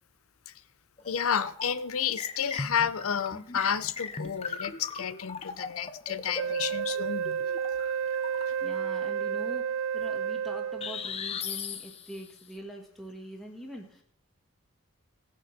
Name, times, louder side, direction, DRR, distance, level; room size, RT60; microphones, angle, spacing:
sound 1, 1.0-1.8 2.2-8.8 10.8-12.4, left 5 dB, 25° left, 0.6 m, -39 dB
voice 1, 1.1-7.4, left 7 dB, 75° left, 0.6 m, -31 dB
Wind instrument woodwind instrument, 6.3-11.1, right 7 dB, 70° right, 0.5 m, -31 dB
voice 2, 8.6-14.0, right 1 dB, ahead, 1.5 m, -43 dB
17.5 x 6.5 x 5.8 m
head